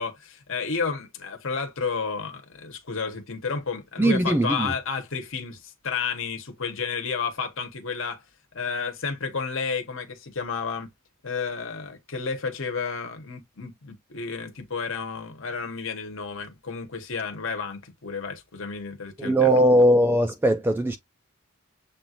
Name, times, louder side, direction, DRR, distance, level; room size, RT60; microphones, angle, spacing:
voice 1, 0.0-8.2 8.5-10.9 11.2-19.7, left 5 dB, 65° left, 1.1 m, -31 dB
voice 2, 4.0-4.7 19.2-21.0, right 1 dB, 10° right, 0.3 m, -20 dB
7.1 x 2.5 x 2.8 m
head